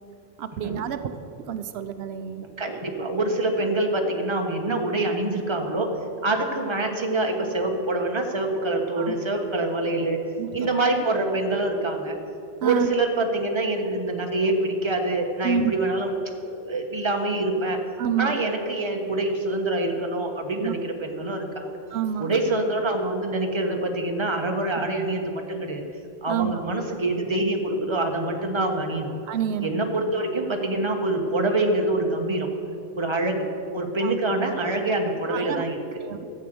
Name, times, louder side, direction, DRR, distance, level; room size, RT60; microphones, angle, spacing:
voice 1, 0.4-2.5 4.7-4.8 9.0-9.1 10.4-10.7 12.6-12.9 15.4-15.7 18.0-18.4 20.6-20.7 21.9-22.3 26.3-26.6 29.3-29.8 34.0-34.2 35.3-35.6 36.0-36.3, right 8 dB, 90° right, 10 dB, 0.9 m, -28 dB
voice 2, 2.6-5.9 6.2-10.2 10.5-12.2 12.6-16.1 16.4-17.8 18.2-21.7 22.2-25.8 26.2-29.1 29.6-32.5 33.0-33.5 33.7-35.8, right 2 dB, 25° right, 3 dB, 1.2 m, -25 dB
13.0 x 7.8 x 7.7 m, 2.8 s
omnidirectional pair, 1.1 m